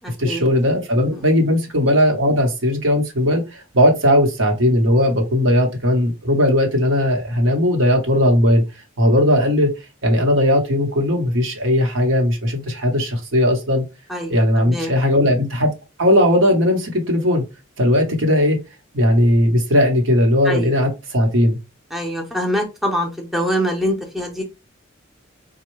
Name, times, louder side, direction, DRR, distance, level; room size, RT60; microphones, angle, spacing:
voice 1, 0.2-8.6 9.0-9.7 10.0-13.8 14.3-15.7 16.0-17.4 17.8-18.6 18.9-21.6, left 1 dB, 70° right, 1.1 m, -17 dB
voice 2, 14.1-14.9 20.4-20.7 21.9-24.4, equal, ahead, 0.6 m, -24 dB
4.3 x 2.2 x 3.1 m
head